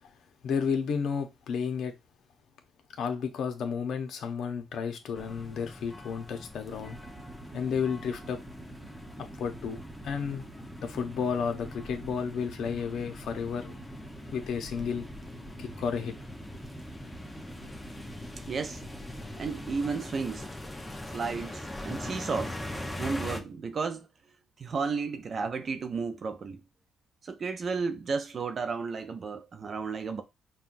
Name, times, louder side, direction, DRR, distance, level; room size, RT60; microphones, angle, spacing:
voice 1, 0.4-1.9 3.0-7.0 7.5-8.4 9.4-9.8 10.0-10.5 10.8-13.7 14.3-15.1 15.6-16.1, left 6 dB, 70° left, 0.7 m, -32 dB
sound 1, 5.2-23.4, left 1 dB, 10° left, 0.7 m, -42 dB
sound 2, 6.7-19.7, right 2 dB, 15° right, 1.0 m, -47 dB
voice 2, 18.5-18.8 19.4-20.5 21.1-22.5 23.0-24.1 24.6-26.6 27.2-30.2, right 5 dB, 45° right, 0.4 m, -33 dB
5.5 x 2.3 x 2.5 m
cardioid pair, 90°, 0 cm